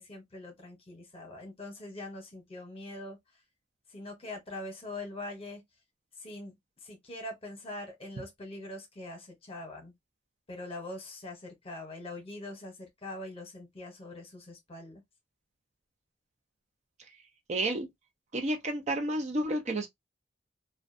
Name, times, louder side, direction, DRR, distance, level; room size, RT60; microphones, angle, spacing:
voice 1, 0.0-3.2 3.9-5.6 6.2-6.5 6.8-9.9 10.5-15.0, left 1 dB, 30° left, 0.9 m, -43 dB
voice 2, 17.5-17.9 18.3-19.9, right 1 dB, 40° right, 0.5 m, -30 dB
2.5 x 2.2 x 2.5 m
head